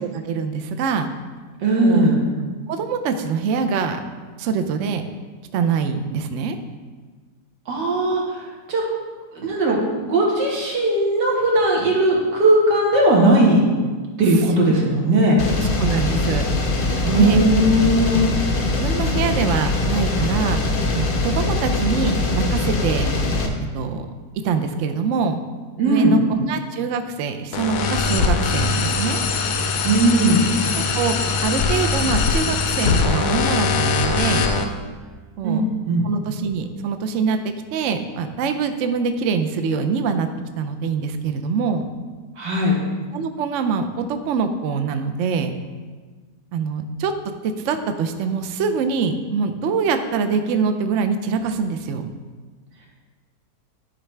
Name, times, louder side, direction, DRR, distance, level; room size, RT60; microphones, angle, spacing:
voice 1, 0.0-1.1 1.8-2.1 2.7-4.0 4.4-5.0 5.5-6.6 15.8-16.5 17.1-17.4 18.8-20.6 20.9-23.1 23.7-24.1 24.4-25.4 25.8-29.2 30.9-31.2 31.4-34.5 35.4-35.6 36.0-40.3 40.6-41.9 43.1-45.5 46.5-47.1 47.4-52.1, right 5 dB, 70° right, 7 dB, 0.7 m, -24 dB
voice 2, 1.6-2.2 7.7-8.4 8.7-8.8 9.4-13.6 14.2-15.4 17.0-18.2 25.8-26.2 29.8-30.4 35.4-36.0 42.4-42.8, right 1 dB, 85° right, -3 dB, 2.1 m, -18 dB
sound 1, 15.4-23.5, left 2 dB, 45° left, 0.7 m, -22 dB
sound 2, 27.5-34.6, left 4 dB, 75° left, 1.1 m, -21 dB
11.0 x 4.6 x 3.3 m, 1.4 s
omnidirectional pair, 1.8 m